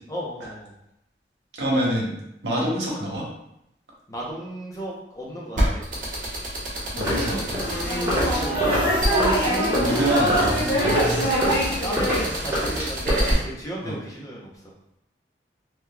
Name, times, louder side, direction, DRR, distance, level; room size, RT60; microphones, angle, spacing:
voice 1, 0.1-0.7 4.1-5.8 7.9-9.1 11.8-14.5, equal, 20° left, -4 dB, 0.6 m, -34 dB
voice 2, 1.6-2.1 2.4-3.2 7.0-7.8 9.8-11.8 13.8-13.9, right 1 dB, 85° right, -3 dB, 1.0 m, -27 dB
sound 1, 5.6-13.3, right 1 dB, 45° right, 1.0 m, -28 dB
sound 2, 6.9-12.3, equal, 75° left, 1.4 m, -24 dB
sound 3, 7.0-13.4, equal, 15° right, 1.1 m, -28 dB
3.7 x 3.0 x 2.2 m, 0.81 s
head